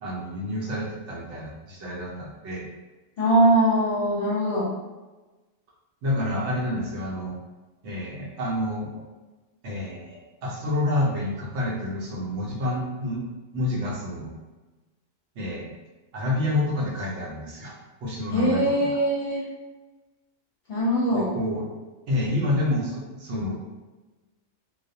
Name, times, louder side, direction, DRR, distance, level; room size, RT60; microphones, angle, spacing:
voice 1, 0.0-2.7 6.0-7.3 7.8-9.0 9.6-13.2 13.5-14.3 15.4-15.7 16.1-17.7 18.0-19.0 21.1-21.7 22.1-23.6, left 1 dB, 70° right, -2 dB, 0.8 m, -28 dB
voice 2, 3.2-4.7 18.3-19.4 20.7-21.3, right 1 dB, 55° left, -9 dB, 0.8 m, -21 dB
2.3 x 2.0 x 2.6 m, 1.2 s
omnidirectional pair, 1.4 m